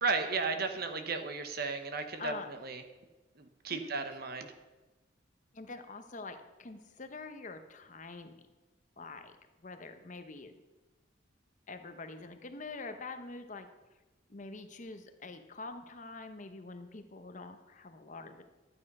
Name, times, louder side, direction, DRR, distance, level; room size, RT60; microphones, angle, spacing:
voice 1, 0.0-2.3 2.6-2.8 3.6-4.5, right 4 dB, 50° right, 7 dB, 1.0 m, -34 dB
voice 2, 2.2-2.5 3.7-4.0 5.5-8.4 9.0-9.3 9.6-10.5 11.7-13.7 14.3-18.4, left 3 dB, 40° left, 8 dB, 0.9 m, -45 dB
12.0 x 8.7 x 5.4 m, 1.1 s
head